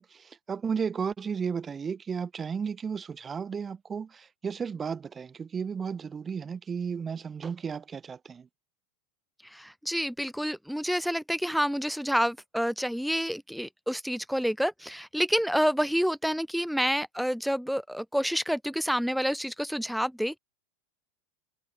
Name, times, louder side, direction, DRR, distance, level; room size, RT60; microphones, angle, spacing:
voice 1, 0.0-8.5, right 6 dB, 20° right, 5.5 m, -34 dB
voice 2, 9.4-20.4, equal, ahead, 3.7 m, -28 dB
figure-of-eight pair, 85°, 0 cm